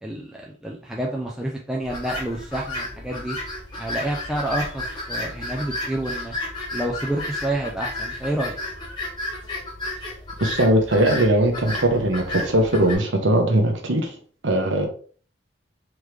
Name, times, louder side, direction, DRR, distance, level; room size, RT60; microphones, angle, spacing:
voice 1, 0.0-3.4 3.8-6.3 6.7-8.6, right 1 dB, 5° right, 0.4 m, -29 dB
sound 1, 1.8-13.0, left 2 dB, 25° left, 1.1 m, -32 dB
voice 2, 10.4-14.1 14.4-14.9, right 1 dB, 75° right, 0.9 m, -20 dB
3.6 x 3.1 x 3.2 m
head